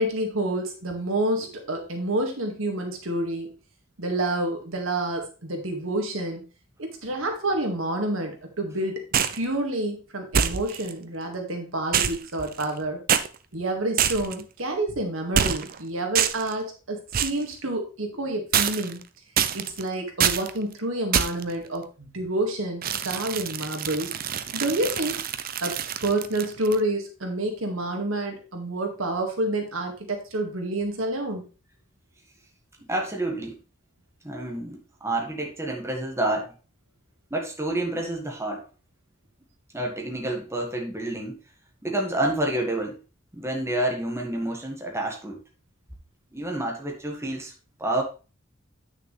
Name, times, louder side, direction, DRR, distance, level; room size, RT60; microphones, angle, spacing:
voice 1, 0.0-3.5 4.0-6.4 6.8-9.0 9.3-13.0 13.5-19.0 19.5-24.1 24.5-25.2 25.6-31.5, right 1 dB, 80° right, 3 dB, 1.9 m, -28 dB
sound 1, 9.1-9.4 10.3-10.9 11.9-12.8 13.1-13.3 14.0-14.4 15.3-15.8 16.1-16.5 17.1-17.4 18.5-19.0 19.4-19.8 20.2-20.5 21.1-21.5 22.8-26.8, right 8 dB, 45° right, 0.5 m, -25 dB
voice 2, 32.9-33.6 34.2-36.5 37.3-38.6 39.7-41.4 41.8-43.0 43.3-45.4 46.3-47.5 47.8-48.0, right 1 dB, 15° right, 0 dB, 1.6 m, -28 dB
8.5 x 6.5 x 3.3 m, 0.34 s
head